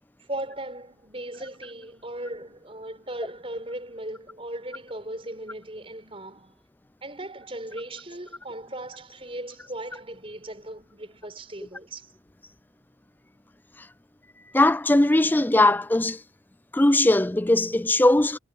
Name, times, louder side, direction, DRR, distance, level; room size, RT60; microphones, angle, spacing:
voice 1, 0.2-6.6 7.0-12.1, right 1 dB, 30° right, 5.1 m, -37 dB
voice 2, 14.5-16.2 16.7-18.4, left 1 dB, 10° left, 0.4 m, -19 dB
head